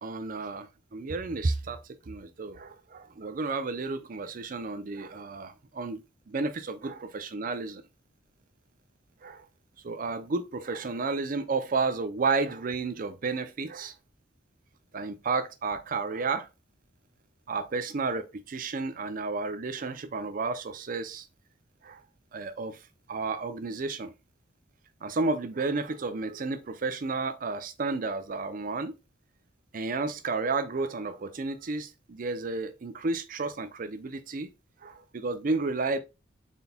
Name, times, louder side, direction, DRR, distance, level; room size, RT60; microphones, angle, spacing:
voice 1, 0.0-6.5 6.8-7.8 9.2-9.4 9.8-13.9 14.9-16.5 17.5-21.3 21.8-22.0 22.3-22.8 23.1-24.1 25.0-28.9 29.7-34.5 34.8-36.0, right 3 dB, 50° right, 0.5 m, -32 dB
4.0 x 3.9 x 2.2 m
head